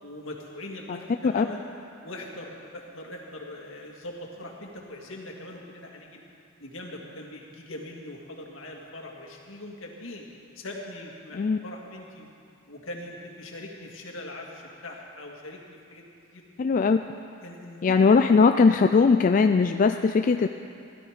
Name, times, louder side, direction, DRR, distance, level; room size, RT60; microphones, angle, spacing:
voice 1, 0.0-1.6 2.0-6.2 6.6-10.3 10.6-12.3 12.7-16.0 16.3-16.4 17.0-17.1 17.4-18.0, left 1 dB, 75° left, 0 dB, 2.0 m, -41 dB
voice 2, 16.6-17.1 17.8-20.5, left 4 dB, 40° left, 7 dB, 0.3 m, -20 dB
16.5 x 12.5 x 5.1 m, 2.5 s
head